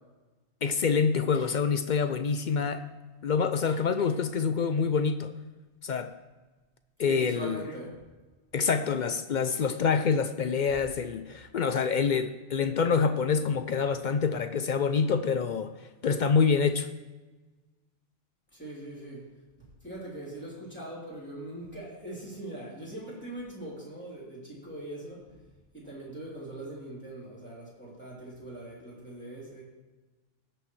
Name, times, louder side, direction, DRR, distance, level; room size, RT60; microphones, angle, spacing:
voice 1, 0.6-2.8 3.2-5.3 5.8-6.2 7.0-7.6 8.5-15.7 16.0-16.9, left 5 dB, 60° left, 10 dB, 0.5 m, -26 dB
voice 2, 7.0-7.9 18.5-19.3 19.6-25.4 25.7-29.6, right 1 dB, 10° left, -7 dB, 3.3 m, -41 dB
17.5 x 6.2 x 3.2 m, 1.2 s
omnidirectional pair, 1.3 m